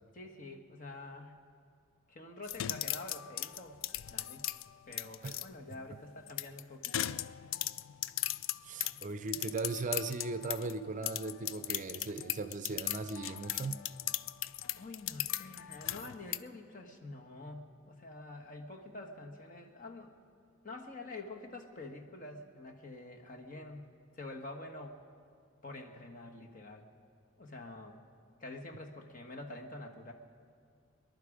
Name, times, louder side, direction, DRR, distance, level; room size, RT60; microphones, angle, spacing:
voice 1, 0.1-1.4 2.1-3.8 4.1-4.5 4.9-7.2 14.8-20.1 20.6-25.0 25.6-26.9 27.4-28.0 28.4-30.1, left 2 dB, 40° left, 2 dB, 1.3 m, -47 dB
broken music box, 2.4-5.5 6.3-10.8 11.0-16.4, left 13 dB, 70° left, 0.3 m, -37 dB
voice 2, 8.6-13.8, right 3 dB, 40° right, 10 dB, 0.5 m, -38 dB
24.0 x 11.0 x 4.9 m, 2.2 s
head